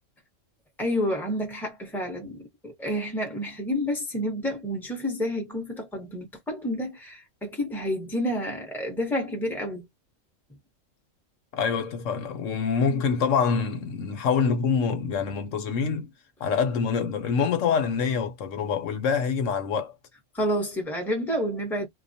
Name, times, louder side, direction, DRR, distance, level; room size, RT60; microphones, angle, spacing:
voice 1, 0.8-9.9 20.3-21.9, equal, ahead, 0.9 m, -29 dB
voice 2, 11.5-16.1 16.4-19.9, left 6 dB, 75° left, 1.1 m, -25 dB
2.4 x 2.2 x 2.6 m
omnidirectional pair, 1.3 m